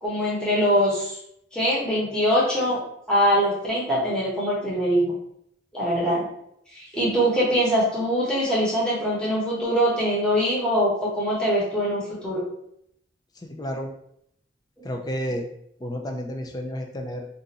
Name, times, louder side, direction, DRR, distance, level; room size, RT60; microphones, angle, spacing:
voice 1, 0.0-1.2 1.5-2.8 3.1-5.1 5.7-6.2 6.7-12.4 14.8-14.9, equal, 5° left, -7 dB, 1.0 m, -23 dB
voice 2, 13.4-13.9 14.8-15.5 15.8-17.3, equal, 20° left, 3 dB, 0.4 m, -31 dB
2.6 x 2.5 x 4.0 m, 0.74 s
head